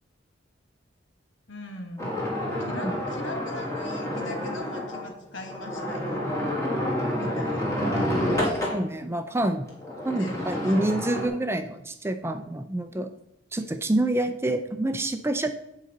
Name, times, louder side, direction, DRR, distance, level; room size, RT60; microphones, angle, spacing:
voice 1, 1.5-2.3 2.6-6.3 7.2-7.7 10.2-11.1, left 2 dB, 80° left, 5 dB, 1.3 m, -40 dB
sound 1, 2.0-8.8 9.7-11.3, left 1 dB, 15° left, 1.9 m, -29 dB
voice 2, 8.7-9.7 10.0-13.1 13.5-15.5, right 1 dB, 15° right, 8 dB, 0.4 m, -27 dB
9.2 x 4.0 x 5.3 m, 0.84 s
head